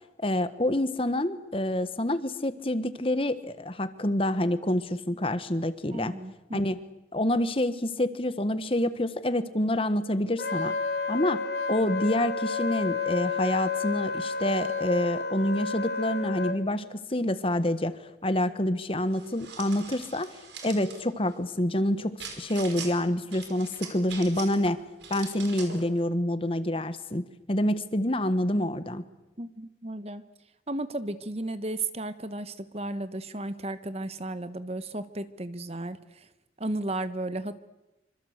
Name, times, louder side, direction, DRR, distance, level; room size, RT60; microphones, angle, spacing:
voice 1, 0.2-6.1 6.5-6.8 7.1-10.7 11.1-11.4 11.7-20.3 20.6-24.8 25.1-29.0, left 1 dB, 30° left, 12 dB, 1.4 m, -27 dB
voice 2, 5.9-6.6 29.4-30.2 30.7-36.3 36.6-37.6, right 2 dB, 35° right, 13 dB, 1.2 m, -34 dB
Wind instrument woodwind instrument, 10.4-16.6, left 5 dB, 65° left, 2.9 m, -31 dB
sound 1, 19.1-21.0 22.2-22.9 23.3-24.7 25.0-25.8, right 6 dB, 80° right, 5.0 m, -42 dB
26.5 x 25.5 x 8.1 m, 0.99 s
head